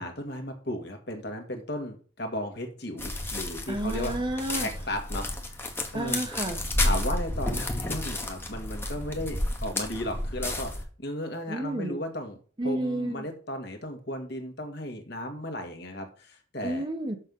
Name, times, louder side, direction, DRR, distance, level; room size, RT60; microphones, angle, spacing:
voice 1, 0.0-4.1 4.5-5.6 5.9-6.2 6.8-16.9, left 1 dB, 55° left, 1.8 m, -35 dB
walking through stuble field, 3.0-10.8, left 1 dB, 10° left, 1.1 m, -31 dB
voice 2, 3.7-4.7 5.9-6.6 11.5-12.0 12.6-13.3 16.6-17.2, right 1 dB, 25° right, 1.0 m, -31 dB
6.5 x 6.5 x 5.4 m
head